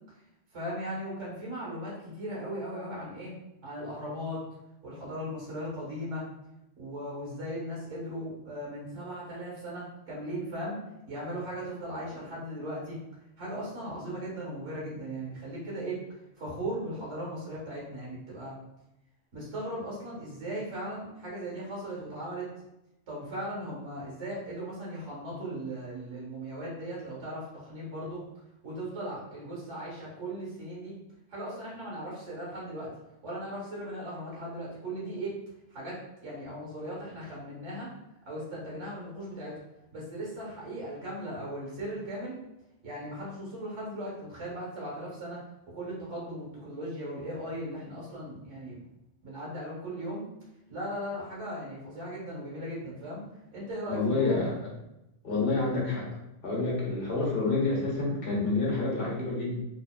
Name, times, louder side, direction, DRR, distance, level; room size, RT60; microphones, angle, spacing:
voice 1, 0.5-3.3 3.6-4.4 4.8-6.2 6.8-10.8 11.1-13.0 13.4-16.0 16.4-18.5 19.3-22.5 23.1-28.2 28.6-31.0 31.3-32.9 33.2-35.4 35.7-37.9 38.2-39.6 39.9-42.4 42.8-45.4 45.7-48.8 49.2-50.2 50.7-53.2 53.5-54.5, right 1 dB, 80° right, -5 dB, 1.6 m, -38 dB
voice 2, 53.9-54.7 55.2-56.1 56.4-59.6, left 3 dB, 50° left, -4 dB, 1.3 m, -28 dB
4.2 x 3.3 x 2.2 m, 0.90 s
omnidirectional pair, 1.3 m